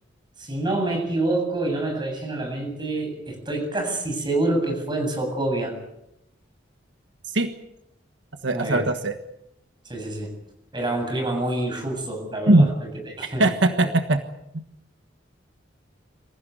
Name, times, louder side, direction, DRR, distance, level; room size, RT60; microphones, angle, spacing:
voice 1, 0.4-5.7 8.5-8.9 9.8-10.3 10.7-12.9 13.2-13.9, right 2 dB, 25° right, 4 dB, 7.9 m, -27 dB
voice 2, 8.4-9.1 12.5-12.7 13.4-14.2 14.5-14.6, right 2 dB, 80° right, 7 dB, 1.4 m, -19 dB
26.0 x 15.5 x 9.5 m, 0.83 s
head